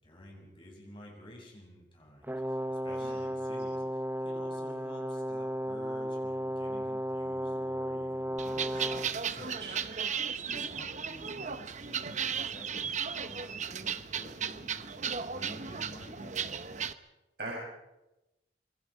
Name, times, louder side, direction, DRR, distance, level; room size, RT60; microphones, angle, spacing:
voice 1, 0.0-8.9 9.3-9.6 10.2-16.6, equal, 30° left, -1 dB, 7.7 m, -51 dB
Brass instrument, 2.2-9.2, equal, 10° right, 0.8 m, -34 dB
sound 1, 8.4-16.9, right 7 dB, 40° right, 0.9 m, -35 dB
voice 2, 9.3-9.8 17.4-17.5, right 3 dB, 65° right, -3 dB, 5.7 m, -41 dB
27.0 x 22.5 x 5.1 m, 0.97 s
head